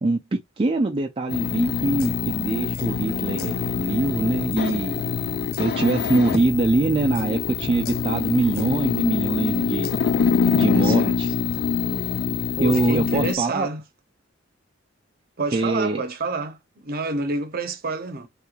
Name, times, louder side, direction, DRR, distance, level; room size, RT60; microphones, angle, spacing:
voice 1, 0.0-5.0 5.6-9.9 10.5-11.3 12.6-13.7 15.5-16.0, right 2 dB, 30° right, 0.4 m, -23 dB
sound 1, 1.3-13.4, left 6 dB, 50° left, 0.3 m, -25 dB
voice 2, 10.6-11.2 12.6-13.8 15.4-18.3, right 3 dB, 50° right, 0.8 m, -29 dB
3.3 x 3.1 x 2.4 m
head